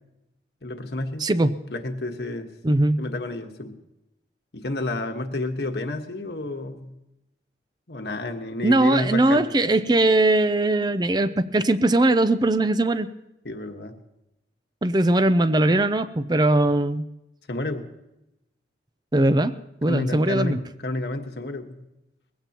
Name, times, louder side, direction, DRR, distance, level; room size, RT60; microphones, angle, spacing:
voice 1, 0.6-1.3 1.7-2.5 3.0-3.7 4.5-6.9 7.9-9.5 13.4-14.0 17.5-17.8 19.9-21.8, left 2 dB, 70° left, 4 dB, 1.4 m, -30 dB
voice 2, 1.2-1.5 2.6-3.0 8.6-13.1 14.8-17.0 19.1-19.5 19.8-20.6, right 2 dB, 25° right, 13 dB, 0.5 m, -20 dB
21.0 x 16.0 x 2.9 m, 0.90 s
head